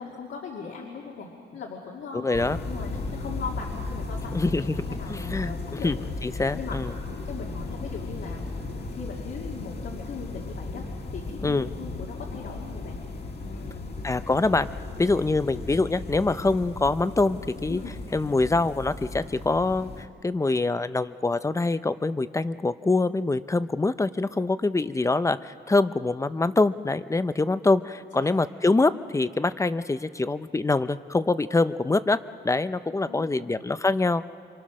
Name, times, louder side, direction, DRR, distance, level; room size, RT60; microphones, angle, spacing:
voice 1, 0.0-2.3 2.6-5.9 6.5-6.8 7.2-8.5 8.9-10.9 11.1-13.0 13.4-13.9 17.7-18.0 28.1-28.3 33.1-33.6, left 5 dB, 70° left, -2 dB, 2.5 m, -39 dB
voice 2, 2.2-2.6 4.3-4.7 5.1-6.9 11.4-11.7 14.0-14.7 15.0-17.8 18.1-32.2 32.4-34.2, left 3 dB, 15° left, 13 dB, 0.5 m, -25 dB
sound 1, 2.3-20.1, left 2 dB, 55° left, 2.2 m, -36 dB
27.0 x 26.0 x 6.2 m, 2.3 s
wide cardioid pair, 150°, 20 cm